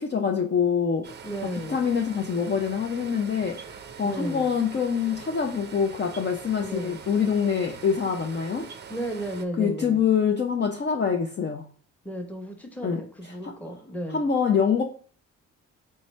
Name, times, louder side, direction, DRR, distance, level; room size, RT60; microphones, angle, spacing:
voice 1, 0.0-1.1 1.7-8.7 9.6-11.7 12.8-13.0 13.4-13.5 14.1-14.8, left 6 dB, 35° left, 1 dB, 0.5 m, -25 dB
sound 1, 1.0-9.4, right 6 dB, 35° right, 0.5 m, -43 dB
voice 2, 1.2-1.8 4.0-4.5 6.6-7.0 8.9-10.0 12.0-14.2, right 1 dB, 5° left, 2 dB, 1.0 m, -34 dB
4.2 x 3.4 x 3.2 m, 0.44 s
cardioid pair, 85°, 31 cm